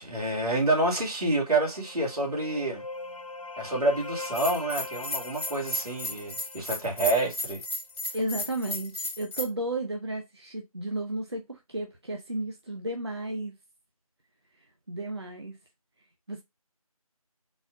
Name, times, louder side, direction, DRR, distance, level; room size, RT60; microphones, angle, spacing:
voice 1, 0.0-2.8 3.6-7.6, right 2 dB, 85° right, 2.2 m, -28 dB
sound 1, 1.7-7.4, left 3 dB, 65° left, 0.7 m, -41 dB
Bell, 4.2-9.4, left 2 dB, 45° left, 1.1 m, -35 dB
voice 2, 8.1-13.5 14.9-15.6 16.3-16.4, right 1 dB, 45° right, 0.7 m, -33 dB
4.1 x 2.6 x 4.7 m
figure-of-eight pair, 175°, 19 cm